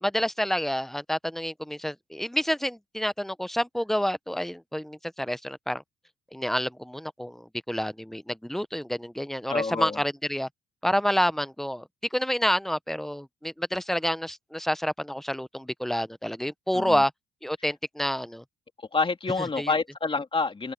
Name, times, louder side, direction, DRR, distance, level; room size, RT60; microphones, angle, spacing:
voice 1, 0.0-5.8 6.3-10.5 10.8-17.1 17.4-18.4 19.6-19.7, equal, ahead, 0.8 m, -28 dB
voice 2, 9.5-10.0 16.7-17.0 18.9-20.7, left 4 dB, 25° left, 3.0 m, -28 dB
cardioid pair, 90°, 20 cm